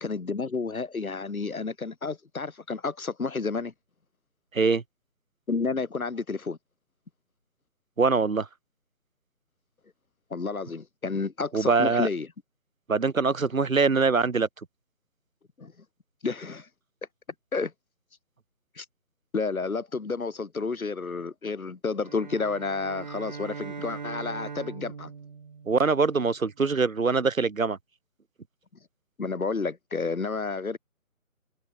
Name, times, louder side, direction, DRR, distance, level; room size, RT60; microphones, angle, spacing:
voice 1, 0.0-3.7 5.5-6.6 10.3-12.3 15.6-15.7 16.2-16.7 17.5-17.7 18.8-18.9 19.3-25.1 29.2-30.8, left 4 dB, 70° left, 4.2 m, -30 dB
voice 2, 8.0-8.5 11.5-12.1 12.9-14.5 25.7-27.8, right 4 dB, 65° right, 3.0 m, -23 dB
sound 1, 22.0-26.5, right 5 dB, 30° right, 2.5 m, -41 dB
hypercardioid pair, 175°, 44 cm